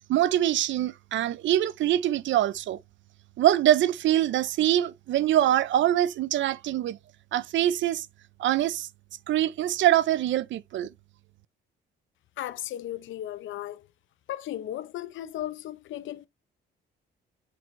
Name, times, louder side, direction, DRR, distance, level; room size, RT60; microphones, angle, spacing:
voice 1, 0.1-2.8 3.4-7.0 7.3-8.1 8.4-8.9 9.3-10.9, right 12 dB, 70° right, 0.5 m, -24 dB
voice 2, 12.4-13.9 14.3-16.3, left 12 dB, 75° left, 0.7 m, -35 dB
8.7 x 4.5 x 3.2 m
cardioid pair, 90°, 20 cm